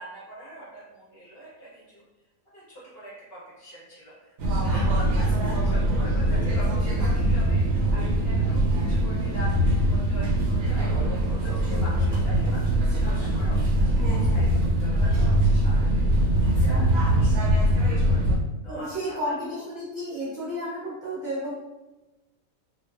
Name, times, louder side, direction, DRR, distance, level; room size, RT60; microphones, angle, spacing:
voice 1, 0.0-2.0 2.5-7.6 7.9-16.0 16.4-18.3 18.6-19.6, equal, 50° left, -6 dB, 0.9 m, -43 dB
sound 1, 4.4-18.4, right 1 dB, 75° right, 1.0 m, -22 dB
voice 2, 13.9-14.5 16.5-16.8 18.7-21.5, equal, 45° right, -9 dB, 0.6 m, -33 dB
2.6 x 2.4 x 2.3 m, 1.1 s
omnidirectional pair, 1.6 m